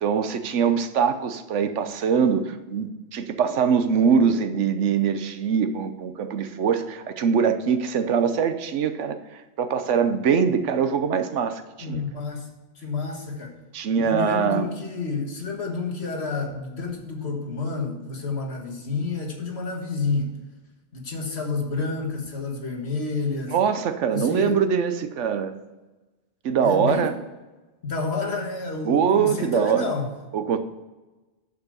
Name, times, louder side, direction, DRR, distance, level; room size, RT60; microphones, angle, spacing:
voice 1, 0.0-9.2 9.6-11.6 11.9-12.0 13.7-14.7 23.5-25.5 26.4-27.1 28.8-29.9 30.3-30.6, right 7 dB, 75° right, 10 dB, 1.0 m, -23 dB
voice 2, 11.8-12.5 12.8-13.6 14.0-20.4 20.9-23.6 24.1-24.6 26.6-27.2 27.8-30.1, left 4 dB, 60° left, 1 dB, 1.7 m, -29 dB
7.0 x 6.8 x 6.5 m, 1.2 s
omnidirectional pair, 1.3 m